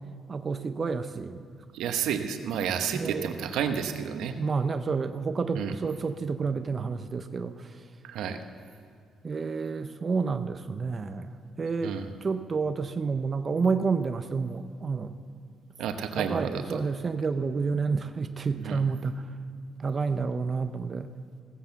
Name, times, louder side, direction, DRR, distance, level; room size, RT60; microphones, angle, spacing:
voice 1, 0.3-1.4 2.9-3.5 4.4-7.7 9.2-15.2 16.2-19.2 19.8-21.1, right 4 dB, 35° right, 9 dB, 0.6 m, -30 dB
voice 2, 1.7-4.4 5.5-5.7 8.0-8.4 11.8-12.1 15.8-16.8 18.6-18.8, right 8 dB, 85° right, 7 dB, 1.0 m, -30 dB
15.5 x 7.9 x 7.0 m, 2.3 s
cardioid pair, 90°, 0 cm